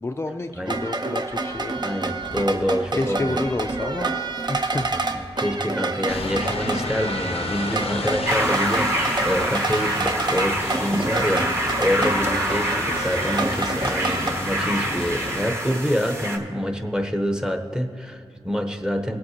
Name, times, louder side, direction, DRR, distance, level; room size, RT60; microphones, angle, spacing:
voice 1, 0.0-1.7 2.9-4.1 4.5-5.2, left 2 dB, 25° left, 4 dB, 0.4 m, -29 dB
sound 1, 0.7-14.3, right 3 dB, 45° right, 0.7 m, -28 dB
voice 2, 1.8-3.4 4.9-19.2, equal, 5° right, 5 dB, 0.9 m, -26 dB
sound 2, 6.1-15.5, left 4 dB, 80° left, 0.6 m, -33 dB
sound 3, 8.3-16.4, right 1 dB, 25° right, 1.2 m, -26 dB
17.5 x 7.7 x 2.8 m, 2.5 s
cardioid pair, 50°, 10 cm